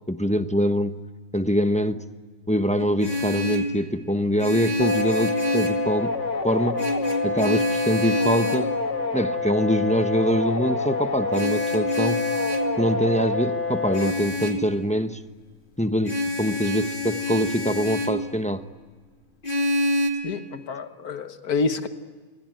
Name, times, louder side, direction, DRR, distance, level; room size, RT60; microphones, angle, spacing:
voice 1, 0.1-1.0 1.3-2.0 2.5-6.2 6.4-6.8 7.2-8.7 9.1-12.2 12.8-15.2 15.8-18.6, equal, 5° left, 0.8 m, -24 dB
Vehicle horn car horn honking, 2.8-3.8 4.4-5.9 6.8-8.7 11.3-12.7 13.9-14.7 16.0-18.2 19.4-20.1, left 1 dB, 35° left, 2.8 m, -27 dB
sound 1, 4.8-14.1, left 3 dB, 50° left, 2.7 m, -27 dB
voice 2, 20.2-21.9, left 4 dB, 80° left, 1.8 m, -28 dB
28.5 x 22.5 x 9.1 m
omnidirectional pair, 1.6 m